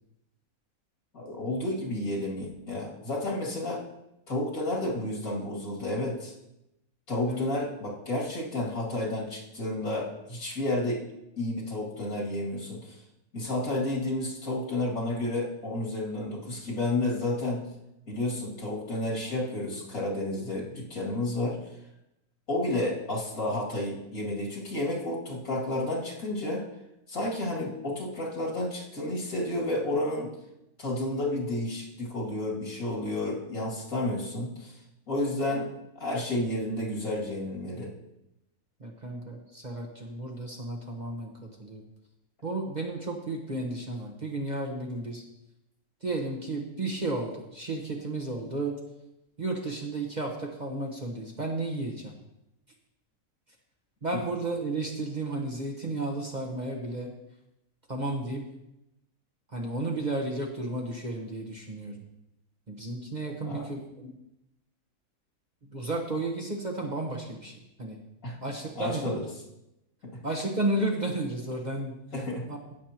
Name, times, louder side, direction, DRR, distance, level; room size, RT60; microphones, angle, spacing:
voice 1, 1.1-3.8 4.3-6.3 7.1-11.0 11.4-13.0 13.3-17.7 18.1-21.6 22.5-26.6 27.1-30.3 30.8-34.8 35.1-35.7 36.0-37.9 63.4-63.6 68.2-68.4 68.8-69.3 70.0-70.2 72.1-72.4, left 1 dB, 75° left, -4 dB, 2.9 m, -31 dB
voice 2, 38.8-41.3 41.6-41.8 42.4-45.2 46.0-48.8 49.4-52.1 54.0-57.1 57.9-58.4 59.5-61.9 62.7-64.1 65.7-67.5 67.8-68.0 68.4-69.0 70.2-71.9 72.5-72.6, right 2 dB, 35° right, 0 dB, 1.1 m, -33 dB
17.0 x 7.1 x 3.0 m, 0.87 s
omnidirectional pair, 1.5 m